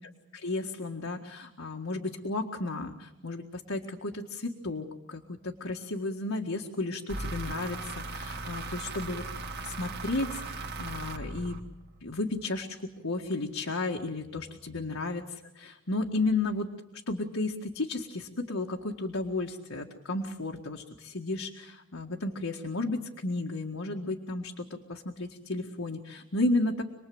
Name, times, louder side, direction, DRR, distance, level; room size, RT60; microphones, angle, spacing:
voice 1, 0.3-9.2 9.6-11.6 12.0-12.8 13.0-16.7 17.1-26.8, left 2 dB, 75° left, 2 dB, 1.8 m, -33 dB
sound 1, 7.1-12.0, right 2 dB, 50° right, 2.2 m, -38 dB
27.5 x 21.0 x 7.9 m, 0.92 s
head